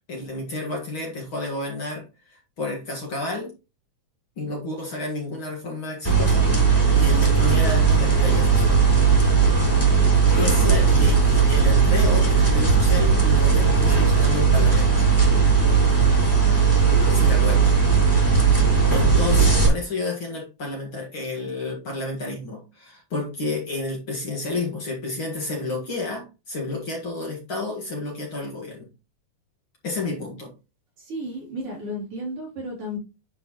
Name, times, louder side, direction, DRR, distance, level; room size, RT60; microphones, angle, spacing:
voice 1, 0.1-3.5 4.4-8.8 10.2-15.1 17.1-17.8 18.5-28.9 29.8-30.5, left 2 dB, 45° left, 0 dB, 2.3 m, -31 dB
sound 1, 6.0-19.7, right 5 dB, 5° left, 3.2 m, -17 dB
voice 2, 31.0-33.0, equal, 50° right, -4 dB, 4.0 m, -33 dB
10.0 x 4.7 x 3.1 m, 0.28 s
omnidirectional pair, 3.4 m